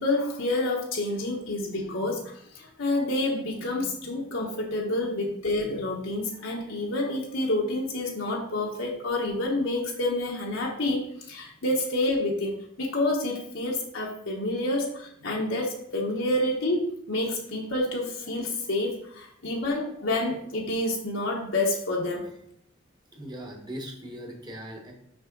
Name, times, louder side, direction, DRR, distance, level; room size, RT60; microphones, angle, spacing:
voice 1, 0.0-22.2, left 2 dB, 75° left, -2 dB, 1.2 m, -28 dB
voice 2, 23.1-24.9, equal, 20° right, 1 dB, 1.3 m, -39 dB
6.3 x 5.6 x 3.9 m, 0.69 s
head